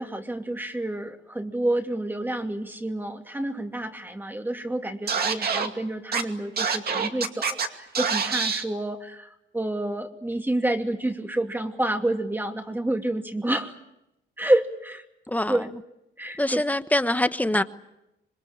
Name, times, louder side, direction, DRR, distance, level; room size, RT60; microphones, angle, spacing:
voice 1, 0.0-13.8 14.4-15.0 15.5-15.7 16.2-16.6, right 1 dB, 10° right, 2.7 m, -28 dB
Scratching (performance technique), 5.1-5.7 6.1-6.2 6.6-7.7 7.9-8.6, right 5 dB, 50° right, 2.4 m, -25 dB
voice 2, 16.4-17.6, left 1 dB, 10° left, 1.2 m, -24 dB
26.5 x 21.0 x 8.8 m
cardioid pair, 90°, 20 cm